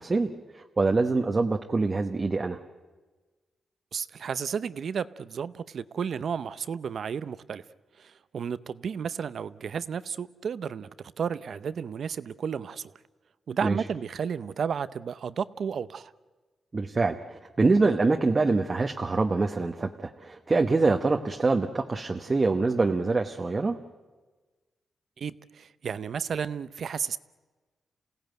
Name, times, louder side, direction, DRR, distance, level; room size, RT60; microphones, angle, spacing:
voice 1, 0.0-2.6 13.6-13.8 16.7-23.8, right 3 dB, 30° right, 4 dB, 1.1 m, -25 dB
voice 2, 3.9-7.6 8.0-10.9 11.2-12.9 13.5-16.1 25.2-27.2, right 7 dB, 65° right, 15 dB, 0.7 m, -32 dB
27.5 x 17.0 x 9.2 m, 1.3 s
cardioid pair, 105°, 0 cm